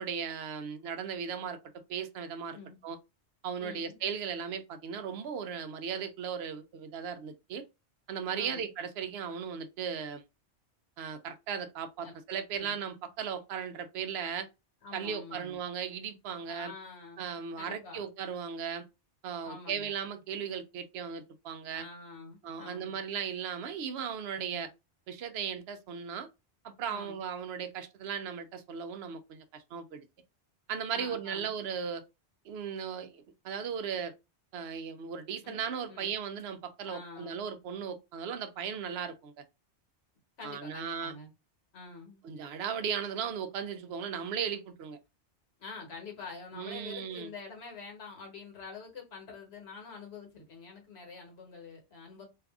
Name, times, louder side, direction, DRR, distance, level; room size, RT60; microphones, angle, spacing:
voice 1, 0.0-1.6 1.9-2.6 2.8-3.0 3.4-7.6 8.1-10.2 11.0-14.5 14.9-16.7 17.2-18.9 19.2-21.8 22.4-24.7 25.1-26.3 26.6-30.1 30.7-32.0 32.4-34.1 34.5-39.3 40.4-41.1 42.2-45.0 46.5-47.3, right 7 dB, 70° right, 0.8 m, -37 dB
voice 2, 3.6-4.0 8.3-8.7 12.0-12.1 12.5-12.8 14.8-15.6 16.5-17.3 17.6-18.0 19.4-19.9 21.7-23.0 24.5-24.7 26.9-27.2 30.9-31.5 35.4-35.6 35.9-36.2 36.8-37.4 40.4-41.3 41.7-42.2 45.6-52.2, left 4 dB, 65° left, 1.3 m, -46 dB
2.7 x 2.4 x 3.4 m
omnidirectional pair, 1.2 m